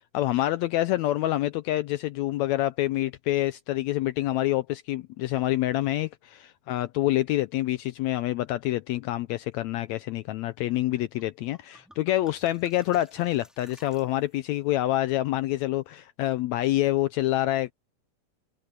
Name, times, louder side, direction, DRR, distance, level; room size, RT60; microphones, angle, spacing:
voice 1, 0.1-17.7, left 15 dB, 85° left, 1.6 m, -27 dB
sound 1, 11.2-11.3 11.5-14.6, equal, ahead, 3.2 m, -56 dB
omnidirectional pair, 3.7 m